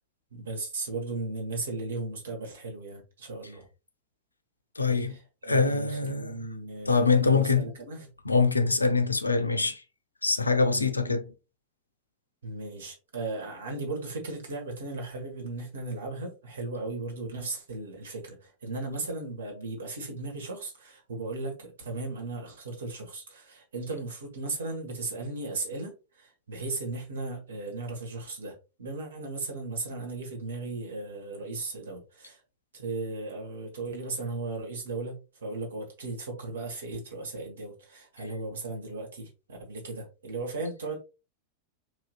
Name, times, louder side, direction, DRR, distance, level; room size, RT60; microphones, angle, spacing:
voice 1, 0.3-3.7 4.9-8.1 10.7-10.9 12.4-32.4 32.7-41.0, right 3 dB, 65° right, 1.4 m, -36 dB
voice 2, 4.8-5.1 5.4-6.4 6.9-7.7 8.3-9.8 10.2-11.2, left 4 dB, 80° left, 0.5 m, -24 dB
4.7 x 2.8 x 2.3 m
figure-of-eight pair, 90°, 0 cm